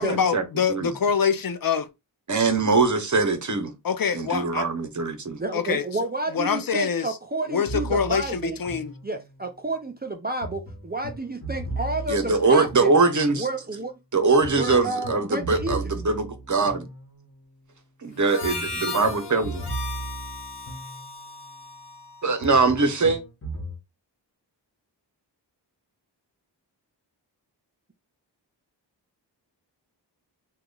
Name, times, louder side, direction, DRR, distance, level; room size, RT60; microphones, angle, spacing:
voice 1, 0.0-1.9 3.8-4.7 5.5-5.9 6.3-7.2 7.5-8.9, left 6 dB, 55° left, 0.5 m, -25 dB
voice 2, 2.3-3.7 4.1-5.4 12.1-13.5 14.1-16.9 18.0-19.6 22.2-23.2, right 3 dB, 45° right, 0.9 m, -22 dB
voice 3, 5.4-8.6 9.0-12.9 13.3-15.8, right 2 dB, 25° right, 0.5 m, -30 dB
sound 1, 7.7-9.5 10.4-13.5 14.4-17.5 18.4-21.5 22.4-23.8, right 2 dB, 30° left, 1.0 m, -37 dB
Harmonica, 18.2-22.8, left 4 dB, 70° left, 1.1 m, -36 dB
2.9 x 2.2 x 3.8 m
cardioid pair, 55°, 43 cm